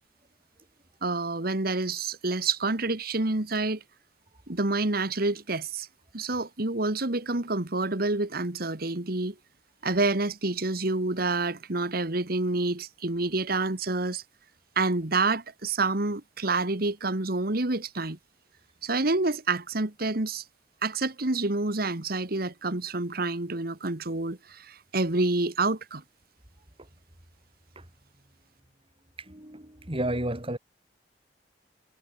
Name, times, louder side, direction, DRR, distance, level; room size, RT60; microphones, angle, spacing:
voice 1, 1.0-3.8 4.5-5.9 6.1-9.3 9.8-14.2 14.8-18.2 18.8-20.4 20.8-26.0, right 3 dB, 60° right, 1.9 m, -28 dB
voice 2, 29.2-30.6, right 1 dB, 30° right, 4.2 m, -32 dB
head